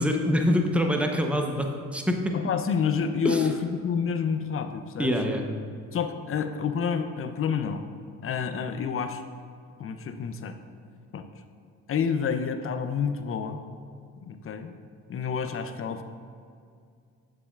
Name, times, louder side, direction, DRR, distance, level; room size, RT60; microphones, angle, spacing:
voice 1, 0.0-2.3 3.2-3.5 5.0-5.4, equal, 5° right, 3 dB, 0.7 m, -25 dB
voice 2, 2.3-5.1 5.9-7.8 8.2-9.2 9.8-10.6 11.1-11.2 11.9-13.6 14.2-14.7 15.1-16.0, left 6 dB, 40° left, 8 dB, 0.6 m, -28 dB
7.0 x 6.8 x 2.4 m, 2.3 s
supercardioid pair, 70°, 32 cm